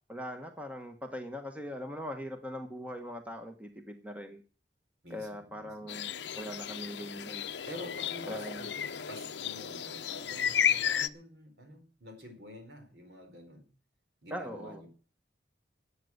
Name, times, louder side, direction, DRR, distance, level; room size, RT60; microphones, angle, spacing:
voice 1, 0.1-4.4 5.1-7.4 8.3-8.7 14.3-14.8, equal, 10° right, 5 dB, 1.2 m, -41 dB
voice 2, 5.0-6.0 7.7-13.7 14.2-14.9, left 1 dB, 65° right, 5 dB, 4.3 m, -48 dB
sound 1, 5.9-11.1, left 8 dB, 70° left, 0.7 m, -33 dB
13.5 x 8.3 x 7.9 m, 0.40 s
head